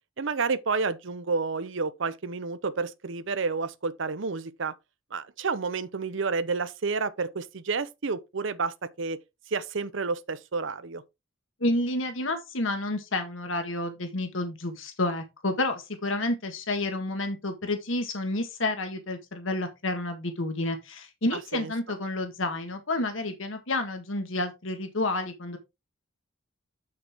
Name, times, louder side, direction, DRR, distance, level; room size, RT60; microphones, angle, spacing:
voice 1, 0.2-4.7 5.1-9.2 9.5-11.0 21.5-21.7, right 4 dB, 65° right, 0.7 m, -30 dB
voice 2, 11.6-25.6, left 2 dB, 75° left, 1.6 m, -30 dB
7.5 x 6.6 x 3.5 m
head